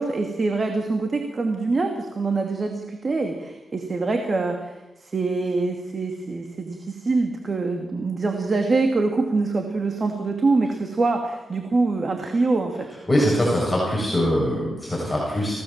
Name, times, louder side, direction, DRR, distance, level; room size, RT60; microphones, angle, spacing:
voice 1, 0.0-4.7 5.0-12.9, right 3 dB, 40° right, 4 dB, 2.6 m, -24 dB
voice 2, 13.1-15.5, equal, 10° left, -4 dB, 7.5 m, -22 dB
27.5 x 17.5 x 7.5 m, 1.1 s
cardioid pair, 90°, 0 cm